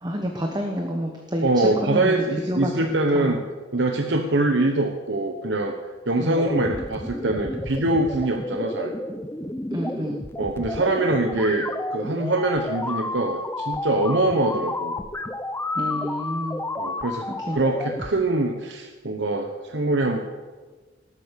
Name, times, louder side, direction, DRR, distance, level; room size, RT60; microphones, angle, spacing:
voice 1, 0.0-1.5 1.8-3.4 6.2-6.4 9.7-10.2 15.7-16.6 17.3-17.6, equal, 20° right, 2 dB, 1.3 m, -29 dB
voice 2, 1.4-3.4 3.7-5.8 6.1-9.0 10.4-14.9 16.8-20.2, right 2 dB, 65° right, 4 dB, 1.0 m, -23 dB
sound 1, 6.3-18.1, left 2 dB, 15° left, 0.6 m, -31 dB
19.0 x 8.3 x 6.5 m, 1.4 s
head